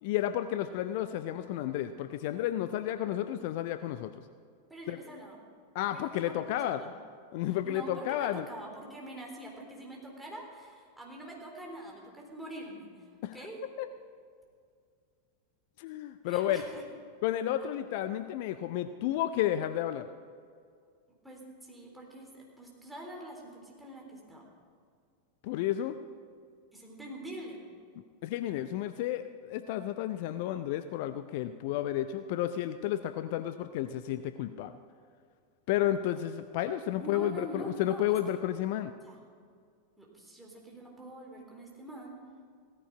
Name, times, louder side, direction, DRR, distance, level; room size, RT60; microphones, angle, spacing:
voice 1, 0.0-4.1 4.9-5.0 5.7-6.8 7.3-8.5 13.2-13.3 13.8-13.9 15.8-16.6 17.2-20.1 25.4-26.0 28.2-34.7 35.7-38.9, left 12 dB, 50° left, 11 dB, 0.5 m, -32 dB
voice 2, 4.7-5.4 5.9-6.9 7.5-13.1 13.3-13.6 16.2-16.8 21.2-24.4 26.7-27.6 37.0-38.0 39.0-39.2 40.0-42.2, right 1 dB, 5° right, -2 dB, 3.7 m, -44 dB
17.0 x 14.0 x 4.8 m, 2.2 s
figure-of-eight pair, 90°, 0 cm